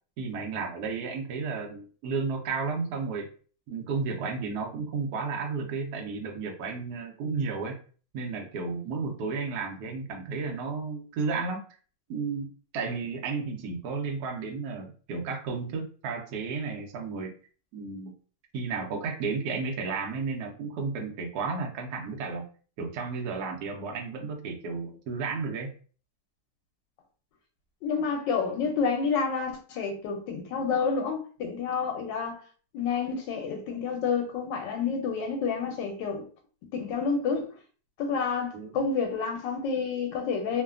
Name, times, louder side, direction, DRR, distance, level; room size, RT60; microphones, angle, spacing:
voice 1, 0.2-3.3 3.7-7.8 8.1-11.6 12.1-12.5 12.7-17.3 17.7-18.1 18.5-22.5 22.8-25.7 38.5-38.7, right 4 dB, 70° right, 1.1 m, -33 dB
voice 2, 27.8-32.4 32.7-36.2 36.7-37.5 38.0-40.6, left 5 dB, 90° left, 1.3 m, -29 dB
3.1 x 2.2 x 2.3 m
omnidirectional pair, 1.9 m